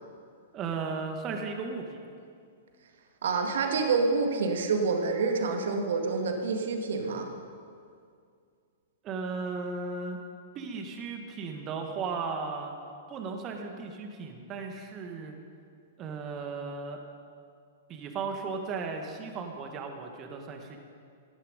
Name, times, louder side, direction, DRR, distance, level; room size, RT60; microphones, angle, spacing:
voice 1, 0.5-2.0 9.0-10.2 10.5-12.7 13.1-15.4 16.0-17.0 17.9-20.8, right 4 dB, 30° right, 4 dB, 1.6 m, -36 dB
voice 2, 3.2-7.3, right 4 dB, 60° right, 3 dB, 1.8 m, -27 dB
17.5 x 11.5 x 5.3 m, 2.3 s
figure-of-eight pair, 105°, 0 cm